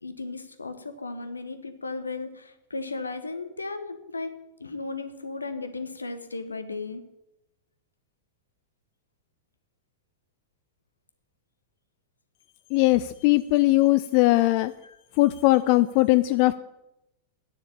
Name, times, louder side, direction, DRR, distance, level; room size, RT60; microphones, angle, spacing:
voice 1, 0.0-7.0 14.8-15.0, left 3 dB, 80° left, 10 dB, 1.2 m, -35 dB
voice 2, 12.7-14.7 15.2-16.5, left 19 dB, 45° left, 13 dB, 0.4 m, -20 dB
9.7 x 7.3 x 8.8 m, 0.90 s
figure-of-eight pair, 90°, 0 cm